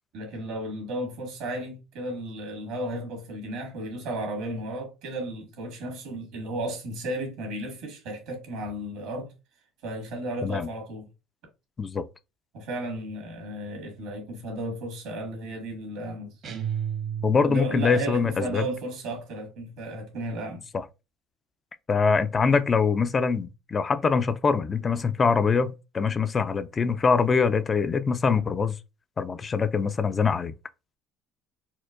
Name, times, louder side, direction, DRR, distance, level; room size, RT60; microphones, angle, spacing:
voice 1, 0.1-9.3 9.8-11.1 12.5-16.3 17.4-20.6, right 1 dB, 75° right, 1.7 m, -34 dB
sound 1, 16.4-17.8, right 9 dB, 55° right, 0.9 m, -32 dB
voice 2, 17.2-18.7 20.7-20.8 21.9-28.8 29.2-30.5, left 5 dB, 30° left, 0.3 m, -24 dB
4.4 x 2.2 x 2.4 m
supercardioid pair, 80°, 0 cm